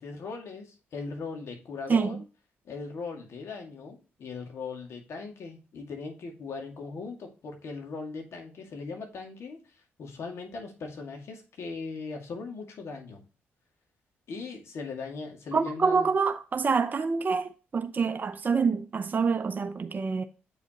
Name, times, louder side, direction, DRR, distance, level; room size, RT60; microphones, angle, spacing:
voice 1, 0.0-2.2 2.6-13.2 14.3-16.2, left 4 dB, 65° left, 2.2 m, -39 dB
voice 2, 15.5-20.2, right 5 dB, 40° right, 0.7 m, -26 dB
8.0 x 5.1 x 2.9 m
supercardioid pair, 60°, 5 cm